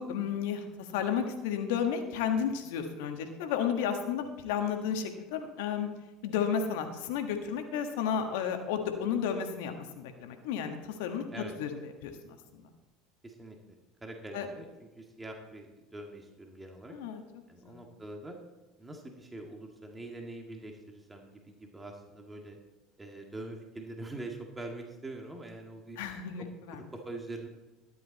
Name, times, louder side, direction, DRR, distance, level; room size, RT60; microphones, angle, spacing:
voice 1, 0.0-5.9 6.2-11.7 12.0-12.6 14.3-14.5 16.9-17.2 17.6-17.8 26.0-26.8, left 7 dB, 75° left, 5 dB, 1.5 m, -32 dB
voice 2, 13.2-13.6 14.0-17.0 17.5-18.4 18.8-22.6 23.0-26.0 26.4-27.5, right 2 dB, 15° right, 2 dB, 2.0 m, -44 dB
13.0 x 10.5 x 4.1 m, 1.1 s
hypercardioid pair, 80°, 0 cm